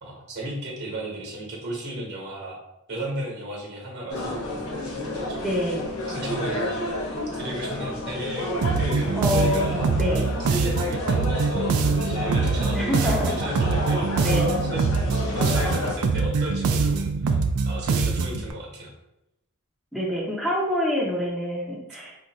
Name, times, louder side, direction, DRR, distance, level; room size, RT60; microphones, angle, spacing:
voice 1, 0.0-2.6 2.9-4.4 5.1-5.5 6.1-9.8 10.4-14.8 15.3-17.4 17.6-18.9, right 1 dB, 50° right, -2 dB, 1.0 m, -34 dB
sound 1, 4.1-15.9, left 1 dB, 85° left, 0.7 m, -31 dB
voice 2, 5.4-5.9 9.1-10.3 12.7-13.3 14.2-14.6 19.9-22.2, left 1 dB, ahead, -4 dB, 0.6 m, -26 dB
sound 2, 8.6-18.5, right 4 dB, 75° right, 0.3 m, -24 dB
2.6 x 2.3 x 4.0 m, 0.88 s
head